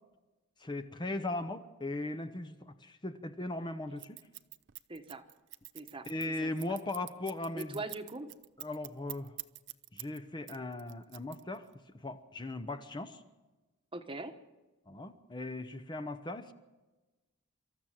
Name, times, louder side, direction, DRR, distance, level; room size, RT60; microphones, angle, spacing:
voice 1, 0.6-4.2 6.1-7.8 8.6-9.4 9.9-11.7 11.9-13.2 14.9-16.5, left 2 dB, 20° left, 9 dB, 0.8 m, -38 dB
Scissors, 4.0-10.2 10.5-11.7, right 17 dB, 60° right, 0.6 m, -46 dB
voice 2, 4.9-5.2 5.7-6.1 6.4-6.8 7.5-8.3 13.9-14.3, right 2 dB, 25° right, 8 dB, 1.2 m, -41 dB
25.5 x 14.0 x 7.5 m, 1.2 s
head